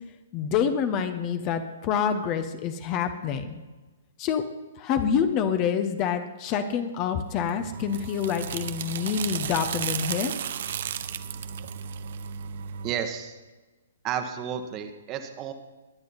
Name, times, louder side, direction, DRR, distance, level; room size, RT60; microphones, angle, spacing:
voice 1, 0.3-3.6 4.2-4.5 4.8-10.3, left 7 dB, 30° left, 9 dB, 1.1 m, -27 dB
sound 1, 7.5-13.0, right 8 dB, 55° right, 0.8 m, -34 dB
voice 2, 12.8-13.4 14.0-15.5, right 9 dB, 25° right, 7 dB, 1.4 m, -32 dB
22.5 x 9.6 x 4.2 m, 1.2 s
figure-of-eight pair, 120°, 0 cm